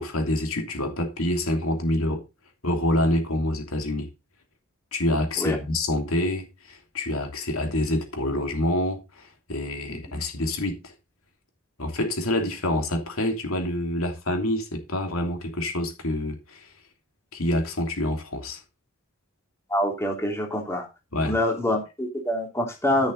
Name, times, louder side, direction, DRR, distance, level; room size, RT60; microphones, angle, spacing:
voice 1, 0.0-2.2 2.6-4.1 4.9-10.8 11.8-16.7 17.3-18.6 21.1-21.3, left 1 dB, 75° left, 2.9 m, -27 dB
voice 2, 19.7-20.9 21.2-23.1, left 1 dB, 15° left, 2.9 m, -26 dB
13.0 x 6.9 x 4.0 m
head